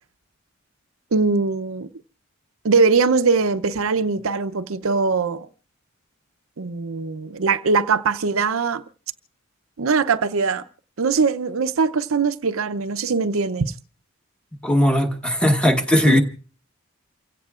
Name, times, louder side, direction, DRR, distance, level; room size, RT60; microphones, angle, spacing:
voice 1, 1.1-1.9 2.6-5.5 6.6-8.8 9.8-10.6 11.0-13.7 16.1-16.2, right 4 dB, 65° right, 0.6 m, -21 dB
voice 2, 14.6-16.2, equal, 5° left, 1.2 m, -18 dB
29.0 x 16.5 x 2.4 m
head